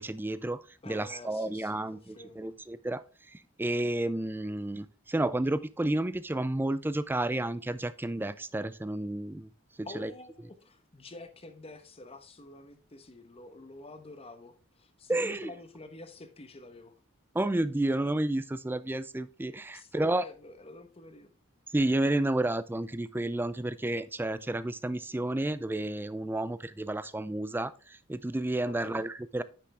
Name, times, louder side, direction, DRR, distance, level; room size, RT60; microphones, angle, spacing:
voice 1, 0.0-3.0 3.3-9.5 10.0-10.1 15.1-15.5 17.3-20.2 21.7-29.4, right 1 dB, 10° right, 0.4 m, -31 dB
voice 2, 0.8-2.5 9.8-16.9 19.7-21.3 28.7-29.1, left 2 dB, 30° left, 0.9 m, -48 dB
9.9 x 5.9 x 3.4 m
head